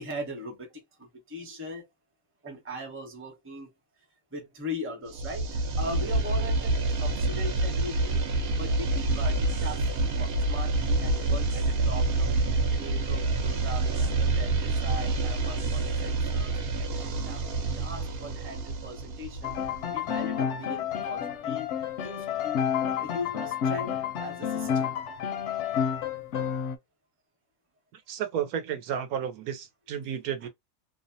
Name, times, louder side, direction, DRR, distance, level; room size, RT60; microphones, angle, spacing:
voice 1, 0.0-1.9 2.4-3.7 4.3-9.9 10.1-12.5 12.8-17.4 17.7-19.6 19.9-21.8 22.0-22.6 23.0-24.9 30.4-30.5, equal, 15° right, 0.6 m, -40 dB
sound 1, 5.1-19.9, right 3 dB, 60° right, 0.7 m, -27 dB
Piano, 19.4-26.8, left 8 dB, 65° left, 0.7 m, -30 dB
voice 2, 27.9-30.5, right 9 dB, 80° right, 1.1 m, -32 dB
2.7 x 2.1 x 2.6 m
omnidirectional pair, 1.6 m